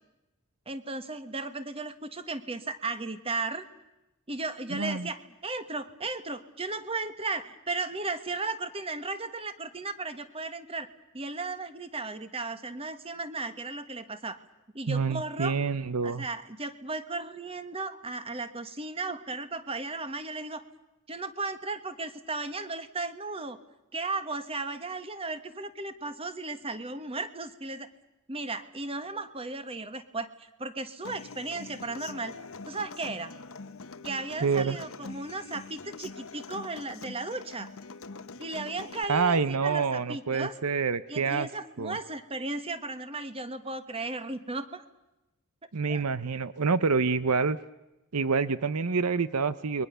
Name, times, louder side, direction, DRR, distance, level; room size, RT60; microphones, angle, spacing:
voice 1, 0.7-3.7 4.3-10.9 11.1-14.4 14.7-15.6 16.0-20.6 21.1-23.6 23.9-27.9 28.3-32.4 32.7-33.3 34.0-37.7 38.4-40.5 41.1-44.8 45.9-46.0, right 3 dB, 25° right, 11 dB, 1.5 m, -35 dB
voice 2, 4.7-5.1 14.9-16.3 34.4-34.8 39.1-41.5 41.8-42.0 45.7-47.6 48.1-49.9, right 5 dB, 90° right, 15 dB, 0.8 m, -27 dB
Human voice / Acoustic guitar, 31.0-39.0, left 4 dB, 65° left, 1.0 m, -44 dB
29.5 x 22.0 x 6.9 m, 0.97 s
head